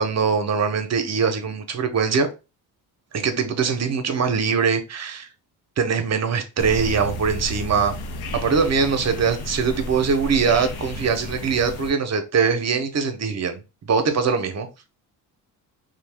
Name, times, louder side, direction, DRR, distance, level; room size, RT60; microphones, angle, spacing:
voice 1, 0.0-2.3 3.1-5.3 5.8-7.9 8.3-13.6 13.9-14.7, right 5 dB, 40° right, 0.7 m, -22 dB
sound 1, 6.6-11.9, left 1 dB, 60° left, 0.7 m, -32 dB
2.6 x 2.2 x 3.3 m
supercardioid pair, 75°, 42 cm